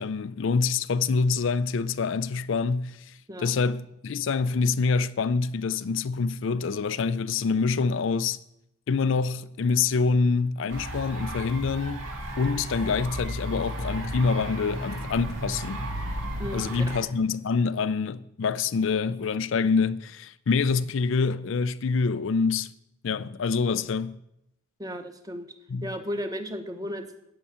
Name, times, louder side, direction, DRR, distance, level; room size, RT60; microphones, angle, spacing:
voice 1, 0.0-8.4 8.9-12.0 12.4-15.9 16.5-22.7 23.0-24.2 25.7-25.9, left 4 dB, 65° left, 0.4 m, -26 dB
sound 1, 10.7-17.0, equal, 65° right, 2.4 m, -34 dB
voice 2, 16.4-17.0 24.8-25.5 25.8-27.2, equal, 15° right, 1.0 m, -34 dB
12.5 x 5.5 x 8.7 m
head